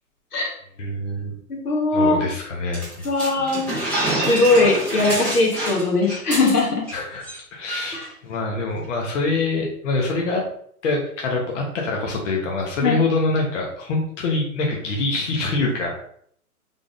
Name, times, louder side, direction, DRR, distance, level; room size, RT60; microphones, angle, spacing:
voice 1, 0.8-1.3 1.9-3.1 3.4-3.5 6.9-10.4 10.8-16.0, left 3 dB, 55° left, 0 dB, 1.0 m, -25 dB
voice 2, 1.5-2.2 3.0-3.7 4.3-6.8 12.8-12.9, left 2 dB, 85° left, -1 dB, 1.4 m, -19 dB
sound 1, 2.7-6.9 7.2-7.4 7.7-8.1, right 1 dB, 5° left, 0.4 m, -27 dB
3.6 x 3.6 x 2.5 m, 0.63 s
hypercardioid pair, 120°, 45 cm